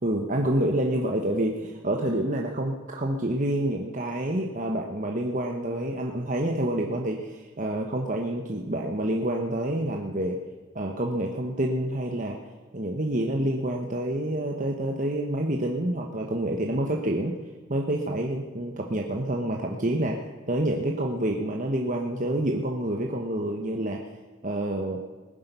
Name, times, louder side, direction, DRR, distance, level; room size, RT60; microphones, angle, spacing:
voice 1, 0.0-10.4 10.7-12.4 12.7-17.4 17.7-20.2 20.5-24.0 24.4-25.0, right 1 dB, 35° right, 1 dB, 1.1 m, -28 dB
18.5 x 10.5 x 6.9 m, 1.3 s
head